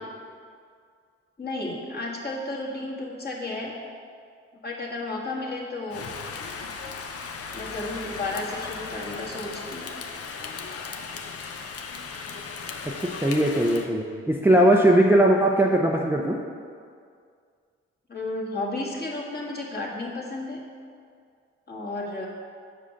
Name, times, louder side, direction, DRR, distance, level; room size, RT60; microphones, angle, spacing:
voice 1, 1.4-3.7 4.6-6.1 7.5-9.9 18.1-20.6 21.7-22.3, left 2 dB, 35° left, -3 dB, 1.7 m, -32 dB
Rain, 5.9-13.9, left 5 dB, 50° left, 0.7 m, -37 dB
voice 2, 13.0-16.4, right 1 dB, 5° right, -1 dB, 0.6 m, -20 dB
5.4 x 5.0 x 5.7 m, 2.2 s
hypercardioid pair, 50°, 30 cm